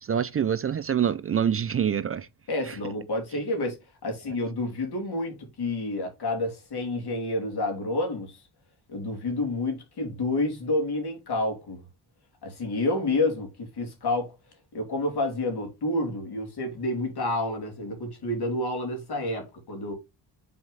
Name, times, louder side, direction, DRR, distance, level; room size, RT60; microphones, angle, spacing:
voice 1, 0.0-2.3 2.7-2.8, right 8 dB, 35° right, 0.4 m, -26 dB
voice 2, 2.5-8.4 8.9-11.8 12.4-14.3 14.7-19.9, left 2 dB, 70° left, 2.9 m, -29 dB
5.8 x 4.3 x 3.8 m
cardioid pair, 85°, 41 cm